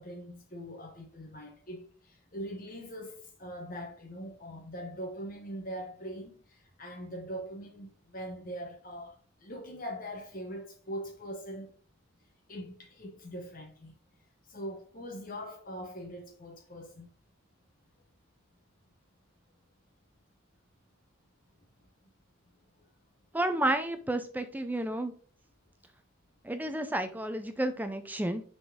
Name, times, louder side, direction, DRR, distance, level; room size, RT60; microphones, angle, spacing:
voice 1, 0.0-11.7 12.5-13.9 14.5-17.1, equal, 40° left, 1.1 m, -42 dB
voice 2, 23.3-25.1 26.4-28.4, right 1 dB, 10° right, 0.4 m, -31 dB
5.9 x 3.9 x 4.9 m
head